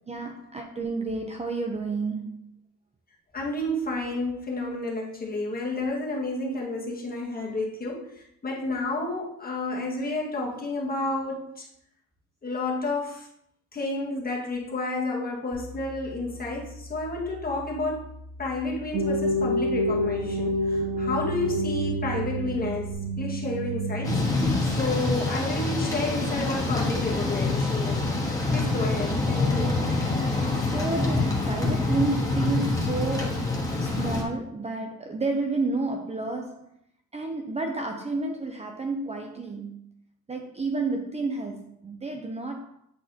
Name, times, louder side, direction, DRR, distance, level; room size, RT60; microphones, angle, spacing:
voice 1, 0.1-2.5 30.5-36.7 37.1-39.9 40.3-42.8, right 3 dB, 20° right, 0.6 m, -31 dB
voice 2, 3.3-11.7 12.4-13.3 13.7-18.1 18.4-28.2 28.5-29.8, left 2 dB, 30° left, 1.8 m, -31 dB
sound 1, 15.5-22.9, left 1 dB, 40° right, 2.6 m, -44 dB
sound 2, 18.9-26.8, equal, 75° right, 1.2 m, -29 dB
Thunder / Rain, 24.0-34.2, left 3 dB, 10° left, 1.5 m, -26 dB
8.3 x 4.1 x 2.9 m
cardioid pair, 90°, 30 cm